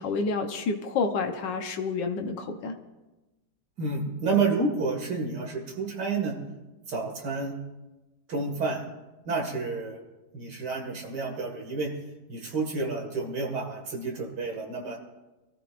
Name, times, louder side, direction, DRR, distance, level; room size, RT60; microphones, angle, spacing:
voice 1, 0.0-2.7, left 4 dB, 85° left, 4 dB, 1.7 m, -29 dB
voice 2, 3.8-6.4 6.9-7.5 8.3-8.8 9.3-10.0 10.3-11.9 12.3-15.0, right 4 dB, 70° right, 1 dB, 2.7 m, -30 dB
24.5 x 14.5 x 2.6 m, 1.1 s
omnidirectional pair, 1.9 m